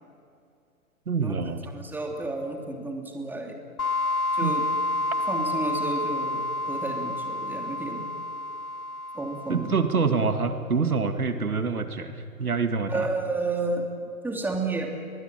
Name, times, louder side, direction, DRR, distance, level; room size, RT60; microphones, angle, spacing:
voice 1, 1.1-1.6 4.4-4.6 9.5-13.1, right 5 dB, 90° right, 8 dB, 2.3 m, -26 dB
voice 2, 1.7-3.6 4.3-4.7 5.3-8.1 9.1-9.8 12.9-13.9 14.2-14.9, right 2 dB, 5° right, 2 dB, 2.8 m, -31 dB
sound 1, 3.8-10.3, left 2 dB, 80° left, 1.8 m, -29 dB
23.0 x 22.5 x 9.0 m, 2.5 s
hypercardioid pair, 130°, 43 cm